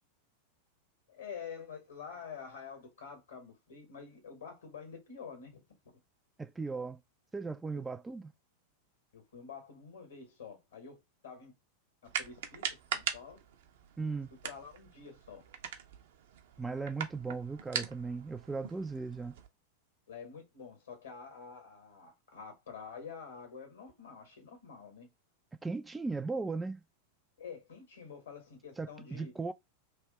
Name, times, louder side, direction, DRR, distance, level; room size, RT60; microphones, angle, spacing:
voice 1, 1.1-5.6 8.0-8.1 9.1-11.0 11.2-11.5 12.0-13.4 14.4-15.4 20.1-25.1 27.4-29.5, left 6 dB, 70° left, 1.7 m, -48 dB
voice 2, 6.4-7.0 7.3-8.3 14.0-14.3 16.6-19.3 25.6-26.8 28.8-29.5, right 4 dB, 10° right, 0.3 m, -37 dB
sound 1, 12.1-19.5, right 8 dB, 55° right, 0.6 m, -41 dB
3.2 x 2.8 x 4.1 m
figure-of-eight pair, 90°, 0 cm